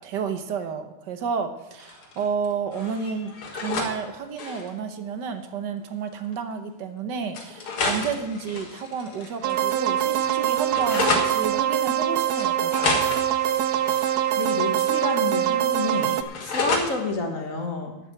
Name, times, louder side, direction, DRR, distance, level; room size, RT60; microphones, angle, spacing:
voice 1, 0.0-13.0, right 6 dB, 60° right, 8 dB, 1.4 m, -31 dB
sound 1, 1.8-2.5 2.7-3.9 4.2-4.7 5.8-5.9 6.2-6.3 7.3-9.6 9.9-11.3 12.4-15.2 15.4-16.9, left 3 dB, 75° left, 2.5 m, -31 dB
sound 2, 9.4-16.2, right 11 dB, 75° right, 0.8 m, -23 dB
voice 2, 14.3-17.9, left 3 dB, 40° left, 2 dB, 1.9 m, -29 dB
11.5 x 7.4 x 7.9 m, 0.99 s
omnidirectional pair, 2.3 m